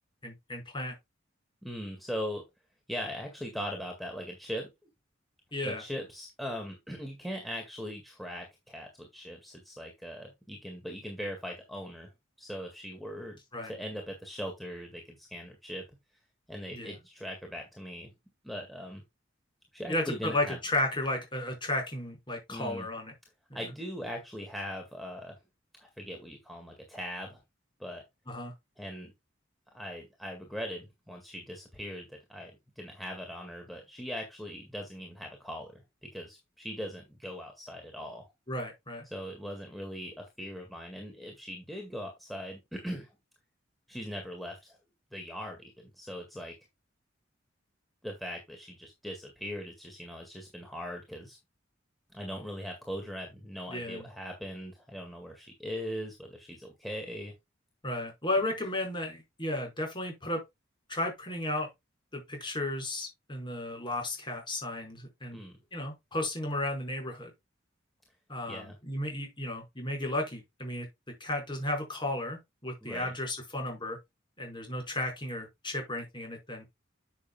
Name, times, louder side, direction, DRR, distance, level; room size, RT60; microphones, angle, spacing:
voice 1, 0.2-0.9 5.5-5.8 13.5-13.7 16.7-16.9 19.9-23.1 23.5-23.6 28.3-28.5 38.5-39.0 53.7-54.0 57.8-60.4 60.9-61.7 62.1-65.4 65.7-67.3 68.3-70.9 71.2-74.0 74.4-76.6, left 1 dB, 25° left, 5.1 m, -34 dB
voice 2, 1.6-2.4 2.9-4.7 5.6-12.1 12.4-13.4 13.6-15.9 16.5-18.1 18.4-19.0 19.7-20.6 22.5-22.9 23.5-25.4 25.8-27.4 27.8-28.0 28.8-29.1 29.7-38.3 39.1-43.1 43.9-44.8 45.1-46.6 48.0-51.4 52.1-57.3 65.3-65.6 68.5-68.8 72.8-73.1, equal, ahead, 1.9 m, -40 dB
10.5 x 7.2 x 2.3 m
head